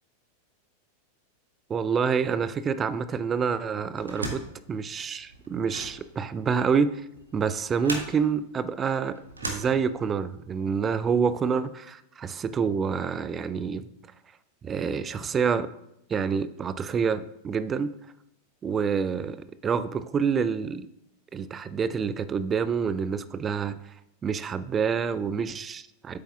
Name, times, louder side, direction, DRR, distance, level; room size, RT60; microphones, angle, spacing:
voice 1, 1.7-4.4 4.7-7.1 7.3-9.2 9.4-13.9 14.6-15.7 16.1-17.9 18.6-20.9 21.3-23.8 24.2-26.2, right 6 dB, 20° right, 14 dB, 0.4 m, -27 dB
sound 1, 4.0-10.3, right 2 dB, 80° right, 1.3 m, -39 dB
9.6 x 8.2 x 2.3 m, 0.82 s
figure-of-eight pair, 90°, 0 cm